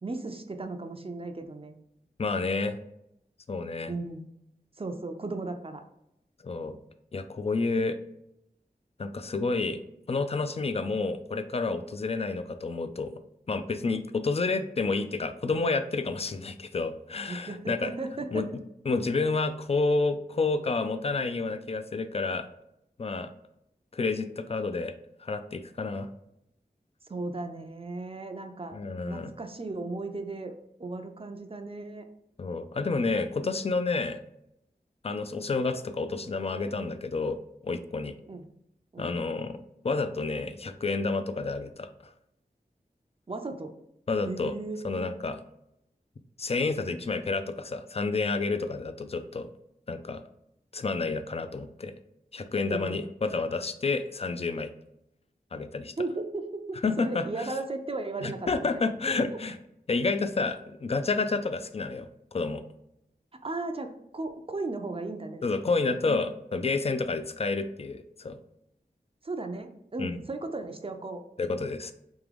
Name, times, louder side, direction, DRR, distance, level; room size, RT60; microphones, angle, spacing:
voice 1, 0.0-1.8 3.9-4.2 4.8-5.8 17.3-18.4 27.1-28.8 29.0-30.5 30.8-32.0 38.3-38.4 38.9-39.2 43.3-43.7 44.2-45.2 52.7-53.1 56.0-58.8 63.4-65.5 66.0-66.2 69.2-71.2, right 3 dB, 35° right, 5 dB, 0.5 m, -36 dB
voice 2, 2.2-2.8 3.5-3.9 6.4-6.7 7.1-8.0 9.0-9.8 10.1-13.2 13.5-17.9 18.3-18.5 18.9-22.5 23.0-23.3 23.9-24.9 25.2-26.1 28.7-29.3 32.4-34.2 35.0-38.2 39.0-42.1 44.1-44.5 44.8-45.4 46.4-49.5 49.9-50.2 50.7-51.9 52.3-54.7 55.5-55.9 56.8-57.5 58.2-59.6 59.9-62.6 65.4-68.4 70.0-70.2 71.4-71.9, left 3 dB, 40° left, 10 dB, 0.4 m, -30 dB
3.6 x 2.9 x 3.3 m, 0.79 s
wide cardioid pair, 60°, 16 cm